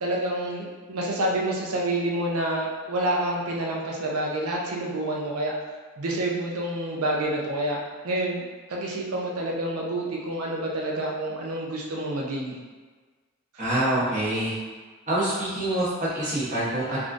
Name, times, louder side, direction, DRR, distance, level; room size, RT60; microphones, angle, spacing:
voice 1, 0.0-5.5 6.0-7.8 8.0-8.4 8.7-12.6, right 1 dB, 85° right, -2 dB, 0.6 m, -28 dB
voice 2, 13.6-14.6 15.1-17.0, right 1 dB, 35° right, -9 dB, 0.9 m, -26 dB
3.5 x 2.5 x 2.5 m, 1.4 s
head